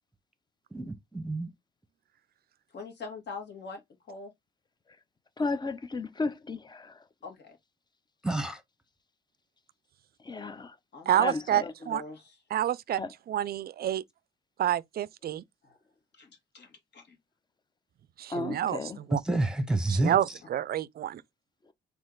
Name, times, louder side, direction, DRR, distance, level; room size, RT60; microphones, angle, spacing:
voice 1, 0.7-1.5 8.2-8.6 19.1-20.1, right 2 dB, 5° right, 1.1 m, -28 dB
voice 2, 2.7-3.8 4.1-4.3 7.2-7.6 10.9-11.2 11.6-12.4 15.6-15.8 16.1-17.2, left 4 dB, 60° left, 1.9 m, -43 dB
voice 3, 5.4-7.0 10.3-10.7 11.2-11.7 13.0-13.1 18.3-19.0 21.6-21.7, left 3 dB, 20° left, 0.7 m, -34 dB
voice 4, 11.1-12.0 12.5-13.0 13.3-14.0 14.6-15.4 18.2-19.2 19.9-21.2, right 11 dB, 50° right, 0.4 m, -28 dB
4.2 x 2.8 x 3.8 m
cardioid pair, 90°, 20 cm